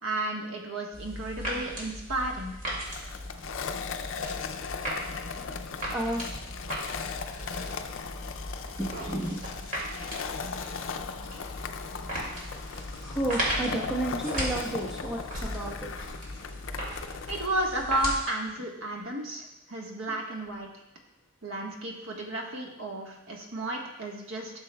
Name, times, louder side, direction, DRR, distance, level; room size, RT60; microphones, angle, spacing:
voice 1, 0.0-2.5 17.3-20.7 21.4-24.5, right 1 dB, 75° right, 0 dB, 1.3 m, -32 dB
sound 1, 0.9-18.2, equal, 40° right, 2.3 m, -37 dB
Skateboard, 2.8-17.5, left 5 dB, 65° left, 0.4 m, -38 dB
voice 2, 5.9-6.2 8.8-9.4 13.0-15.9 20.1-20.2, right 1 dB, ahead, -3 dB, 1.1 m, -32 dB
13.0 x 6.6 x 2.3 m, 0.90 s
head